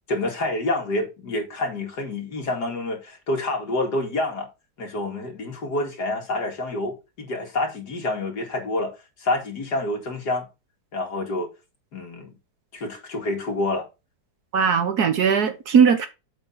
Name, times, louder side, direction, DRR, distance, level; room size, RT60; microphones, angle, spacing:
voice 1, 0.1-4.5 4.8-8.9 9.2-10.5 10.9-11.5 11.9-12.4 12.7-13.9, left 2 dB, 65° left, 2.7 m, -27 dB
voice 2, 14.5-16.1, right 6 dB, 60° right, 1.5 m, -19 dB
7.8 x 3.8 x 5.5 m
omnidirectional pair, 1.9 m